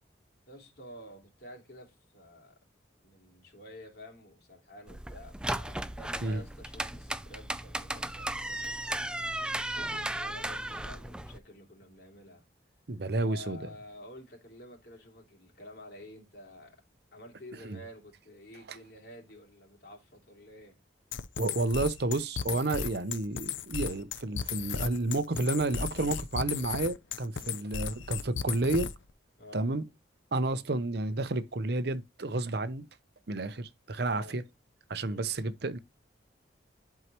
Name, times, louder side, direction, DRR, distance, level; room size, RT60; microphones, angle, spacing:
voice 1, 0.5-2.6 3.0-8.8 9.4-12.4 13.2-16.8 17.1-20.8 27.4-27.6 29.4-29.8 34.0-34.4 35.0-35.3, left 1 dB, 55° left, 3.1 m, -50 dB
sound 1, 4.9-11.4, right 1 dB, 5° right, 0.4 m, -35 dB
voice 2, 12.9-13.6 17.6-17.8 18.7-18.8 21.4-28.9 29.5-29.8 30.3-32.8 33.3-34.4 34.9-35.8, right 2 dB, 55° right, 0.7 m, -31 dB
sound 2, 21.1-29.1, left 7 dB, 85° left, 0.6 m, -35 dB
11.0 x 4.7 x 3.0 m
head